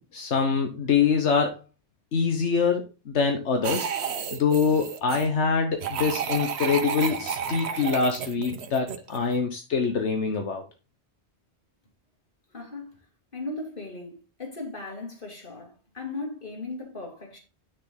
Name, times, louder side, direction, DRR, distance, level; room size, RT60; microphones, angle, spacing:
voice 1, 0.0-1.6 2.1-3.9 4.3-10.6, left 5 dB, 85° left, 1.5 m, -24 dB
sound 1, 3.6-5.3 5.8-9.3, right 7 dB, 70° right, 1.1 m, -31 dB
voice 2, 12.5-13.0 13.3-17.4, left 2 dB, 50° left, 3.3 m, -37 dB
9.7 x 6.7 x 3.9 m
omnidirectional pair, 1.2 m